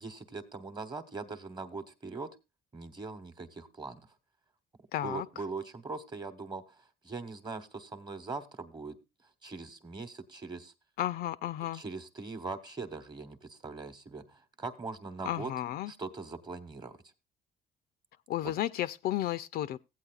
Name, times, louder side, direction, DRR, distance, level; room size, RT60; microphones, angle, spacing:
voice 1, 0.0-2.3 2.7-4.1 5.0-9.0 9.4-10.7 11.7-15.5 15.9-17.0 18.4-18.5, right 3 dB, 25° right, 1.1 m, -41 dB
voice 2, 4.9-5.3 11.0-11.8 15.2-15.9 18.3-19.8, left 13 dB, 65° left, 0.4 m, -33 dB
16.0 x 8.6 x 2.4 m
cardioid pair, 110°, 17 cm